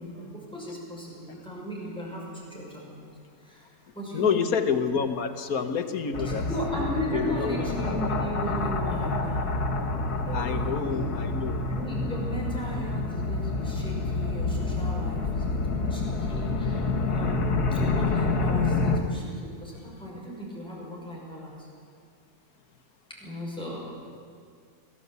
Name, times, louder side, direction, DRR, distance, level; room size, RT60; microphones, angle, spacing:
voice 1, 0.0-3.1 3.4-3.7 3.9-4.4 6.5-9.7 10.3-10.8 11.7-17.4 17.7-21.5 23.1-24.0, equal, 5° left, -4 dB, 6.1 m, -36 dB
voice 2, 4.1-6.4 7.1-7.7 10.3-11.6, left 6 dB, 70° left, 8 dB, 1.6 m, -28 dB
sound 1, 6.1-19.0, left 3 dB, 85° left, 2.2 m, -28 dB
22.5 x 15.5 x 8.2 m, 2.2 s
omnidirectional pair, 1.6 m